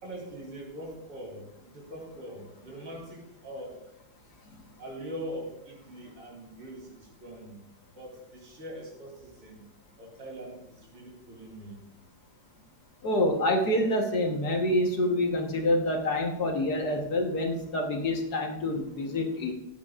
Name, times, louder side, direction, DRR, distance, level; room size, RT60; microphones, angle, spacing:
voice 1, 0.0-3.8 4.8-7.6 7.9-9.6 10.0-11.8, right 1 dB, 90° right, -1 dB, 4.2 m, -42 dB
voice 2, 13.0-19.5, left 1 dB, 55° left, 2 dB, 1.6 m, -27 dB
16.0 x 10.0 x 2.4 m, 0.85 s
omnidirectional pair, 2.3 m